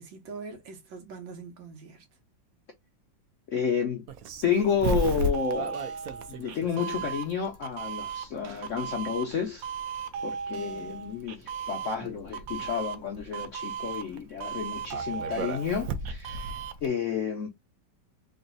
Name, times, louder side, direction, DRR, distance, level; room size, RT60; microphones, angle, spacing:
voice 1, 0.0-2.1 10.5-11.1, right 4 dB, 90° right, 1.9 m, -44 dB
voice 2, 3.5-4.0 4.4-5.9 6.3-9.7 10.2-16.6 16.8-17.5, left 6 dB, 75° left, 0.7 m, -30 dB
Doorbell, 4.1-16.9, right 4 dB, 65° right, 0.9 m, -34 dB
3.9 x 2.2 x 3.9 m
omnidirectional pair, 2.1 m